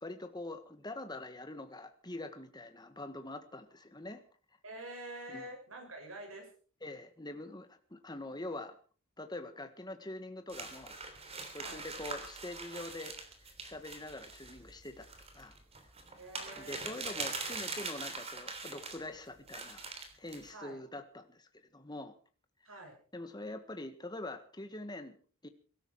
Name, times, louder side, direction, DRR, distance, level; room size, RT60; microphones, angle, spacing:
voice 1, 0.0-4.2 5.3-5.4 6.8-8.7 9.2-10.9 11.5-13.1 13.6-15.6 16.6-19.9 20.2-22.1 23.1-25.1 25.4-25.5, left 2 dB, 20° left, 8 dB, 1.6 m, -44 dB
voice 2, 4.6-6.5 11.5-11.8 16.2-17.2 20.5-20.8 22.6-23.0, right 1 dB, 80° right, 3 dB, 6.8 m, -47 dB
sound 1, 10.5-19.0 19.5-20.5, right 3 dB, 30° right, 3.3 m, -43 dB
22.5 x 13.0 x 4.7 m, 0.41 s
head